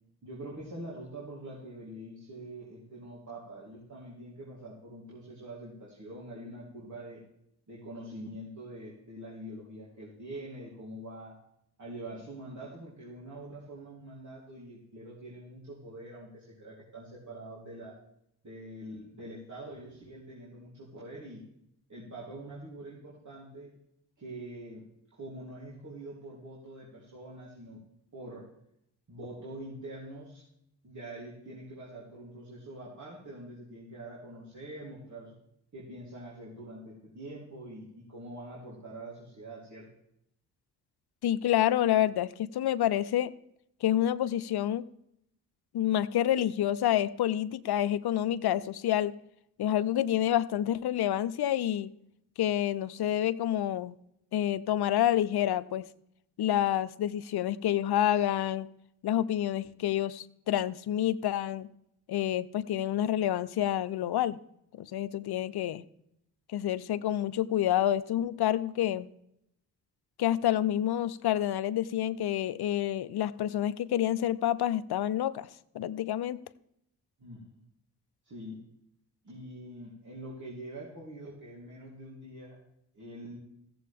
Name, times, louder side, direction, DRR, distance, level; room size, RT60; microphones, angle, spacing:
voice 1, 0.2-7.2 7.7-11.4 11.8-18.0 18.4-21.4 21.9-23.7 24.2-24.8 25.1-27.8 28.1-28.5 29.1-30.4 30.8-35.3 35.7-39.9 77.2-77.6 78.2-78.7 79.2-82.6 82.9-83.4, right 1 dB, 45° right, -6 dB, 3.5 m, -44 dB
voice 2, 41.2-43.3 43.8-44.8 45.7-49.1 49.6-51.9 52.4-54.0 54.3-55.8 56.4-58.7 59.0-61.7 62.1-64.4 64.8-65.8 66.5-69.1 70.2-75.5 75.7-76.4, left 11 dB, 65° left, 15 dB, 0.7 m, -28 dB
15.0 x 7.6 x 3.6 m, 0.76 s
supercardioid pair, 50°, 42 cm